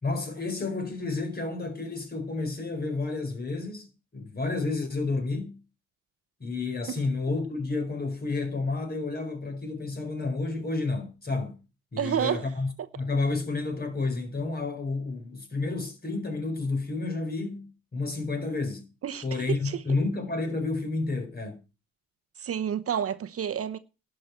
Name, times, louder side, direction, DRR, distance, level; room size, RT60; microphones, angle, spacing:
voice 1, 0.0-5.6 6.4-11.6 11.9-12.7 13.0-18.9 19.2-21.6, left 3 dB, 30° left, 4.7 m, -30 dB
voice 2, 12.0-12.4 19.0-19.8 22.4-23.8, right 9 dB, 50° right, 0.9 m, -29 dB
11.5 x 5.9 x 8.4 m
cardioid pair, 90°, 30 cm